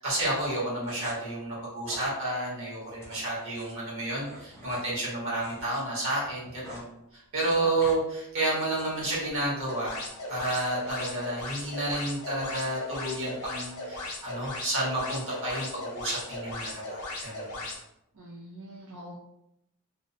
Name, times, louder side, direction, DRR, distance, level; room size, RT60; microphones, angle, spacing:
voice 1, 0.0-10.0 10.3-17.6, right 1 dB, 60° right, -6 dB, 1.1 m, -31 dB
sound 1, 0.8-1.1 1.8-2.1 2.9-5.8 6.1-6.9 7.2-8.0 8.5-9.0, equal, 10° left, 0.5 m, -48 dB
voice 2, 7.6-7.9 18.1-19.2, right 1 dB, 80° right, -4 dB, 0.5 m, -44 dB
sound 2, 9.6-17.8, left 2 dB, 75° left, 0.7 m, -38 dB
2.6 x 2.0 x 2.6 m, 0.82 s
head